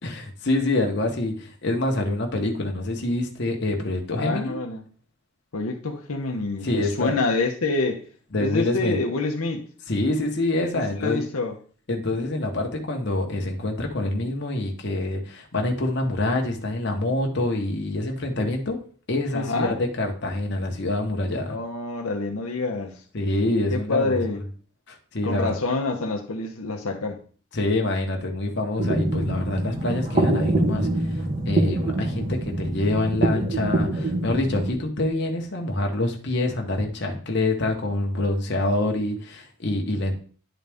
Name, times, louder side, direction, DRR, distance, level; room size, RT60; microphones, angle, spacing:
voice 1, 0.0-4.6 6.6-7.2 8.3-9.0 9.9-11.3 11.9-18.8 19.1-21.6 23.1-24.4 24.9-25.5 27.5-40.2, left 2 dB, 50° left, 1.1 m, -26 dB
voice 2, 4.1-4.8 5.5-8.0 8.4-9.7 11.0-11.5 19.3-19.8 21.5-23.0 23.7-24.4 25.2-27.2, left 3 dB, 80° left, 0.9 m, -27 dB
sound 1, 28.8-34.7, right 2 dB, 35° right, 1.1 m, -25 dB
10.0 x 4.0 x 3.5 m
head